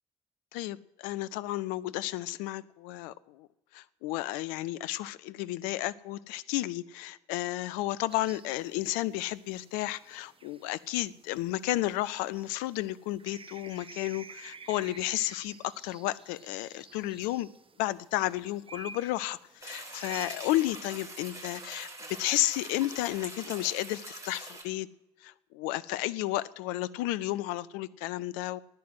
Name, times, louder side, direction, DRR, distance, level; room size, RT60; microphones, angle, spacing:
voice 1, 0.5-3.5 3.7-17.5 17.8-21.9 22.2-24.9 25.2-28.6, left 16 dB, 80° left, 17 dB, 0.6 m, -32 dB
sound 1, 8.1-20.5, right 4 dB, 40° right, 1.4 m, -51 dB
sound 2, 19.6-24.6, right 2 dB, 20° right, 6.3 m, -44 dB
15.0 x 11.0 x 7.8 m, 0.96 s
hypercardioid pair, 40°, 15 cm